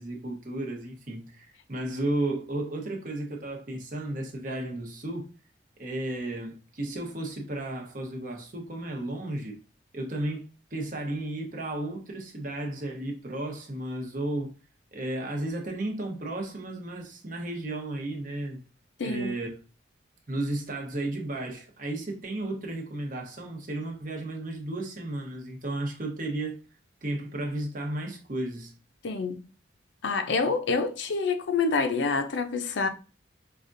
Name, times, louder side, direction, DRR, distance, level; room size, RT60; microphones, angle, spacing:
voice 1, 0.0-5.3 5.8-9.6 9.9-14.5 14.9-18.6 19.0-19.5 20.3-26.6 27.0-28.7, right 1 dB, 45° right, 0.9 m, -33 dB
voice 2, 19.0-19.3 29.0-29.4 30.0-32.9, left 4 dB, 70° left, 0.5 m, -27 dB
5.0 x 2.3 x 2.6 m
head